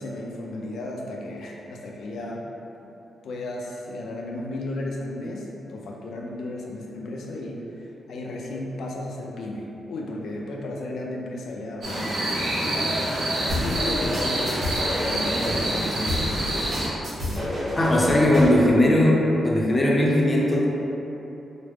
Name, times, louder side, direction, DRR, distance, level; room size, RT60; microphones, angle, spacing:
voice 1, 0.0-2.5 2.8-2.9 3.2-12.9 13.4-16.6 17.2-18.2, left 1 dB, 80° left, -1 dB, 0.5 m, -34 dB
sound 1, 11.8-16.9, right 1 dB, 60° right, 1.0 m, -27 dB
sound 2, 13.5-15.6 16.1-18.6, left 1 dB, 45° right, 1.4 m, -29 dB
voice 2, 17.8-20.6, left 1 dB, 20° left, -4 dB, 0.6 m, -19 dB
4.9 x 2.1 x 3.3 m, 3.0 s
wide cardioid pair, 140°, 0 cm